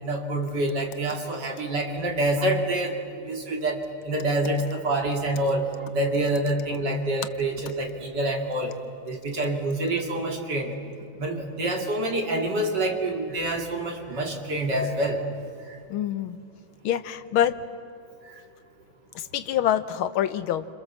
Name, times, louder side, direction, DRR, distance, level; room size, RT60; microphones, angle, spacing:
voice 1, 0.0-2.9 3.2-8.7 9.0-10.8 11.2-15.2 15.6-15.8, right 1 dB, 50° right, 1 dB, 3.3 m, -27 dB
voice 2, 15.9-16.4 16.8-17.6 19.2-20.7, left 11 dB, 75° left, 12 dB, 1.6 m, -25 dB
29.5 x 27.0 x 7.4 m, 2.4 s
omnidirectional pair, 2.3 m